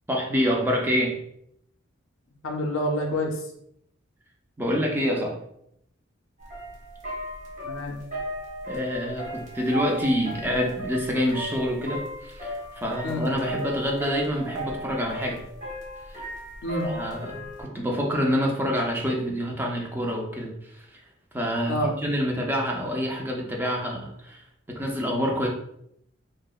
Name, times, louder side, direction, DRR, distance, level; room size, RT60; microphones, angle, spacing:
voice 1, 0.1-1.2 4.6-5.4 8.7-15.4 16.1-16.2 16.8-20.8 21.3-21.8 22.0-25.5, equal, 10° right, -1 dB, 0.4 m, -27 dB
voice 2, 2.4-3.5 7.6-8.0 13.0-13.3 16.6-16.9 21.7-22.0, equal, 80° left, 1 dB, 0.5 m, -27 dB
sound 1, 6.4-17.6, right 1 dB, 40° right, 0.7 m, -36 dB
2.8 x 2.0 x 2.3 m, 0.74 s
head